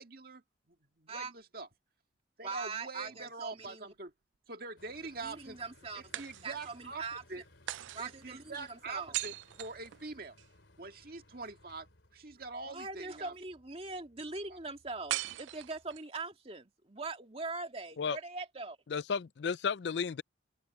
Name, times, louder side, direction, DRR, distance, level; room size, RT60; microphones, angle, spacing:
voice 1, 0.0-1.7 2.4-4.1 4.5-5.6 5.9-7.0 7.3-7.4 8.0-10.4 10.8-11.9 12.1-13.3 14.5-14.6, right 3 dB, 50° right, 2.0 m, -44 dB
voice 2, 2.4-3.9 5.2-6.0 6.4-7.2 7.9-9.2 12.7-18.8, right 3 dB, 30° right, 2.2 m, -41 dB
sound 1, 3.0-4.1 6.1-6.9 7.7-10.5 15.1-16.2, right 15 dB, 80° right, 0.3 m, -41 dB
sound 2, 4.8-16.0, left 2 dB, 85° left, 3.8 m, -63 dB
voice 3, 18.9-20.2, left 6 dB, 65° left, 0.4 m, -33 dB
head